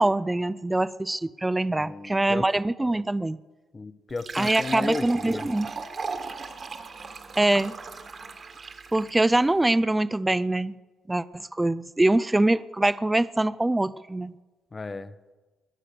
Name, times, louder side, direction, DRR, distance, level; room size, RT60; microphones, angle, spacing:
voice 1, 0.0-3.4 4.4-5.7 7.4-7.8 8.9-10.8 11.1-14.3, right 2 dB, 15° right, 14 dB, 0.4 m, -24 dB
voice 2, 1.7-2.5 3.7-5.5 14.7-15.1, left 3 dB, 30° left, 13 dB, 0.9 m, -34 dB
Fill (with liquid), 4.1-9.2, right 4 dB, 45° right, 1.7 m, -37 dB
22.5 x 8.3 x 6.7 m, 1.2 s
cardioid pair, 90°, 0 cm